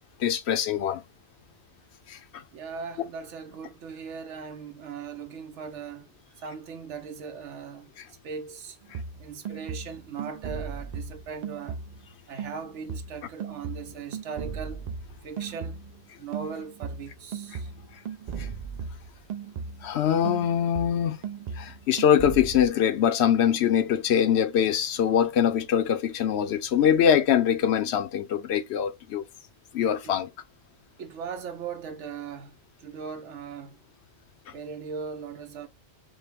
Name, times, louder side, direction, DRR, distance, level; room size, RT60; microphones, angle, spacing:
voice 1, 0.2-1.0 2.1-2.4 3.0-3.1 18.4-18.5 19.8-21.2 21.6-29.2 29.7-30.3, left 9 dB, 70° left, 0.8 m, -23 dB
voice 2, 2.5-6.1 6.4-8.8 9.2-11.8 12.3-14.9 15.2-15.8 16.2-17.7 30.0-30.2 31.0-33.8 34.5-35.7, right 6 dB, 90° right, 1.1 m, -39 dB
sound 1, 8.9-12.1 12.4-16.0 16.3-20.0 20.2-22.7, right 6 dB, 60° right, 0.4 m, -37 dB
5.4 x 2.1 x 3.4 m
omnidirectional pair, 1.2 m